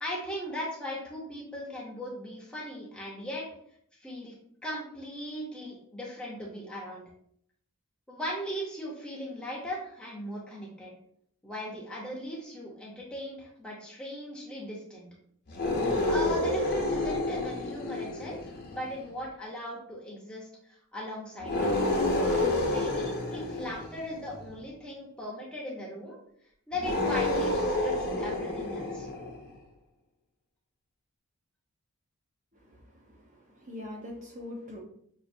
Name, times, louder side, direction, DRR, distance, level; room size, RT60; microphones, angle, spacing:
voice 1, 0.0-3.4 4.0-4.3 4.6-7.0 8.1-10.9 11.4-15.1 16.1-20.5 20.9-21.7 22.7-26.2 26.7-29.1, equal, 5° left, -4 dB, 0.7 m, -38 dB
sound 1, 15.5-19.0 21.4-24.5 26.7-29.5, left 2 dB, 45° left, 0.7 m, -29 dB
voice 2, 32.5-34.8, left 1 dB, 35° right, -1 dB, 0.8 m, -43 dB
5.5 x 2.5 x 2.6 m, 0.68 s
head